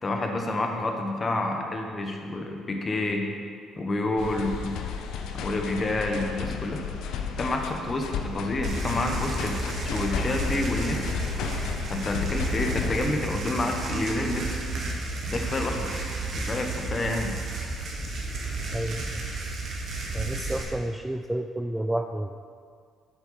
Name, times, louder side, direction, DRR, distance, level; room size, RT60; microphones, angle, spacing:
voice 1, 0.0-3.3 3.8-4.8 5.3-6.8 7.4-9.6 9.8-11.0 11.9-14.6 15.3-15.9 16.3-17.4, left 2 dB, 25° left, 2 dB, 1.3 m, -28 dB
sound 1, 4.2-13.0, left 6 dB, 80° left, 0.8 m, -33 dB
sound 2, 8.6-20.6, right 3 dB, 50° right, 1.8 m, -32 dB
voice 2, 18.7-19.2 20.1-22.4, right 1 dB, 5° right, 6 dB, 0.3 m, -30 dB
8.1 x 8.0 x 5.7 m, 2.1 s
cardioid pair, 130°, 0 cm